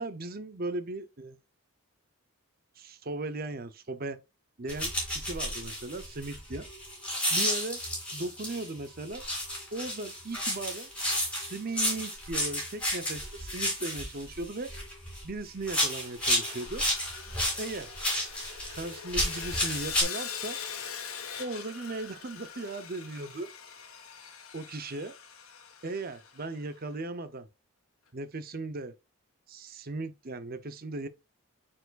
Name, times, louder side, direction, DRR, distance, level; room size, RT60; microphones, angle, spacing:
voice 1, 0.0-1.4 2.8-4.2 4.6-6.7 7.3-7.8 8.1-9.2 9.7-10.9 11.3-14.7 15.2-16.8 17.6-17.9 18.7-20.6 21.4-23.5 24.5-25.1 25.8-27.5 28.1-28.9 29.5-31.1, right 2 dB, 45° right, 0.7 m, -37 dB
sound 1, 4.7-8.7 9.1-15.3 15.6-20.0, equal, 5° left, 3.0 m, -32 dB
Sawing, 16.4-26.6, left 7 dB, 75° left, 1.6 m, -42 dB
8.6 x 4.6 x 2.5 m
head